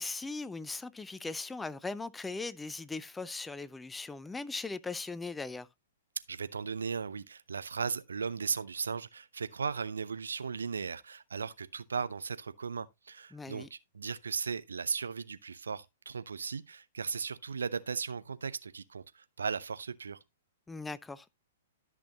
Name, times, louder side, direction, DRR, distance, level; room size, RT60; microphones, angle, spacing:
voice 1, 0.0-5.7 13.3-13.7 20.7-21.3, left 3 dB, 10° left, 0.5 m, -39 dB
voice 2, 6.3-20.2, right 5 dB, 70° right, 0.7 m, -37 dB
13.0 x 6.2 x 2.9 m
figure-of-eight pair, 110°, 0 cm